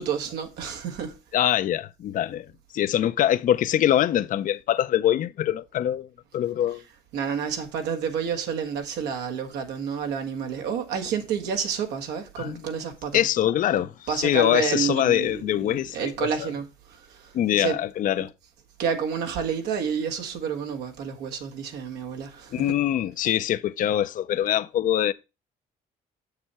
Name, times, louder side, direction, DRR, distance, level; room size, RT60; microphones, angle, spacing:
voice 1, 0.0-1.1 6.7-13.3 13.8-17.8 18.8-22.8 23.2-23.3, right 7 dB, 85° right, 1.6 m, -30 dB
voice 2, 1.3-2.5 2.7-6.1 6.3-6.8 12.4-12.6 13.1-16.1 16.4-16.5 17.3-18.3 22.5-25.1, left 11 dB, 55° left, 0.5 m, -23 dB
6.9 x 6.7 x 4.3 m
cardioid pair, 110°, 17 cm